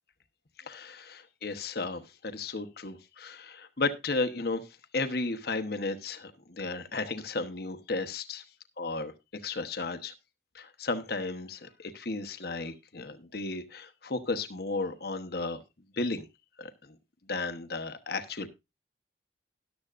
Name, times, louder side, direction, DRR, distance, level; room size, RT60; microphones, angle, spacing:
voice 1, 0.7-4.6 4.9-8.4 8.8-9.1 9.4-10.1 10.5-15.6 16.0-16.3 16.6-16.7 17.3-18.5, left 3 dB, 55° left, 1.0 m, -34 dB
13.5 x 11.5 x 2.5 m
head